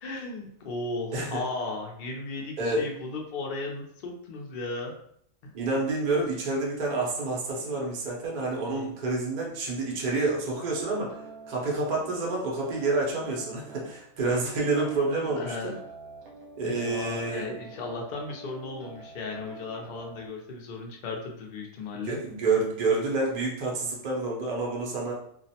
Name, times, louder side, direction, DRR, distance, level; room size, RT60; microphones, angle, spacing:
voice 1, 0.0-4.9 5.4-5.5 8.7-9.2 15.3-15.7 16.6-22.2, left 3 dB, 65° left, 1 dB, 0.5 m, -36 dB
voice 2, 5.5-11.2 11.5-15.7 16.5-17.6 21.9-25.1, right 3 dB, 50° right, -2 dB, 0.5 m, -28 dB
sound 1, 10.3-20.3, right 3 dB, 70° right, 1.0 m, -47 dB
2.4 x 2.0 x 2.7 m, 0.68 s
omnidirectional pair, 1.5 m